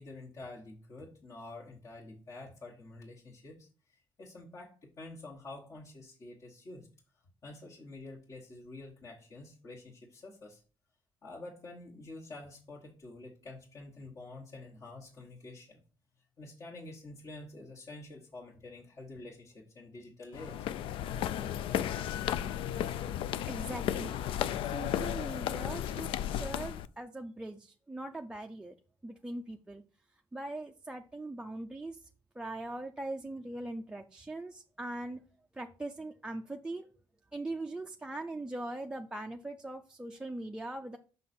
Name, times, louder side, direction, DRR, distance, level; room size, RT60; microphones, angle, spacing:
voice 1, 0.0-6.9 7.4-10.6 11.2-15.8 16.4-20.9, left 2 dB, 40° left, -4 dB, 1.3 m, -48 dB
sound 1, 20.3-26.9, left 10 dB, 75° left, 0.4 m, -34 dB
voice 2, 23.5-24.2 24.6-28.7 29.0-29.8 30.3-32.0 32.4-35.2 35.5-36.9 37.3-41.0, right 2 dB, 10° right, 3 dB, 0.4 m, -41 dB
5.7 x 5.4 x 4.3 m, 0.39 s
cardioid pair, 130°, 9 cm